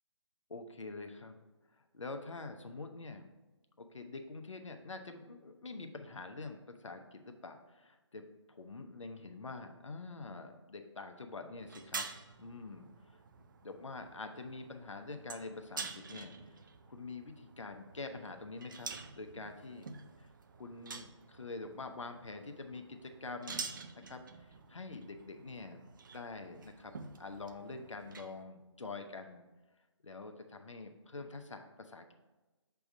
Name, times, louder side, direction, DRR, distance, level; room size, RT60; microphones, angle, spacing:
voice 1, 0.5-1.3 1.7-3.3 3.8-8.2 8.5-13.2 13.6-16.3 16.9-18.9 19.2-19.9 20.2-20.3 20.6-23.8 24.1-25.8 26.1-26.9 27.2-29.4 30.0-32.1, left 3 dB, 75° left, 6 dB, 0.8 m, -46 dB
sound 1, 11.6-28.4, right 4 dB, 40° right, 0.4 m, -48 dB
6.0 x 3.5 x 5.3 m, 1.1 s
figure-of-eight pair, 155°, 16 cm